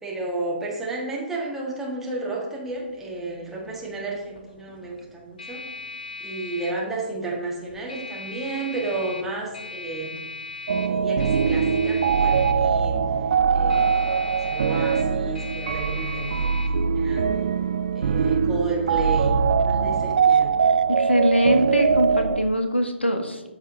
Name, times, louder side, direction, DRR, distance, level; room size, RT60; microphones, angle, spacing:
voice 1, 0.0-5.6 6.2-10.3 10.9-13.0 13.5-17.3 17.9-20.5, right 2 dB, 5° right, -5 dB, 1.6 m, -32 dB
sound 1, 2.7-19.5, left 3 dB, 50° left, 1.5 m, -40 dB
sound 2, 10.7-22.4, right 6 dB, 45° right, 0.4 m, -22 dB
voice 2, 20.9-23.4, equal, 80° left, 6 dB, 1.2 m, -22 dB
13.5 x 5.4 x 2.8 m, 1.0 s
figure-of-eight pair, 135°, 6 cm